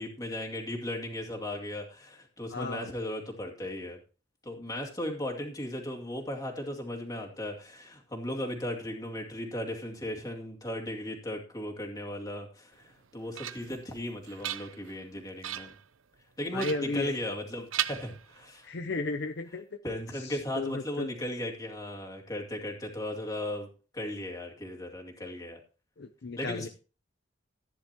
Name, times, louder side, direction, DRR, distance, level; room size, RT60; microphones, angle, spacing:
voice 1, 0.0-4.0 4.4-15.7 16.4-18.7 19.8-25.6 26.4-26.7, left 1 dB, 20° left, 1 dB, 2.4 m, -36 dB
voice 2, 2.5-2.9 16.5-17.1 18.6-19.7 20.2-21.1 26.0-26.7, left 3 dB, 60° left, 7 dB, 0.7 m, -34 dB
sound 1, 12.9-13.8 14.2-15.0 15.4-15.9 16.6-17.4 17.7-18.7, right 12 dB, 85° right, 0.6 m, -37 dB
15.0 x 10.0 x 2.9 m, 0.35 s
head